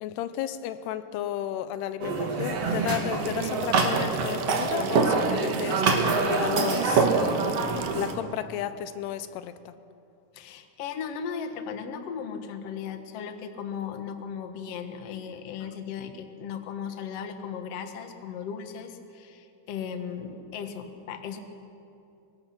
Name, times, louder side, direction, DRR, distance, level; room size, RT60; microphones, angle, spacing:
voice 1, 0.0-9.7 15.6-15.7, left 11 dB, 85° left, 12 dB, 2.8 m, -33 dB
sound 1, 2.0-8.1, right 4 dB, 50° right, 2.3 m, -25 dB
sound 2, 3.2-8.2, right 8 dB, 70° right, 2.1 m, -39 dB
voice 2, 10.3-21.4, left 7 dB, 55° left, 7 dB, 1.8 m, -36 dB
25.5 x 23.0 x 6.0 m, 2.6 s
omnidirectional pair, 4.7 m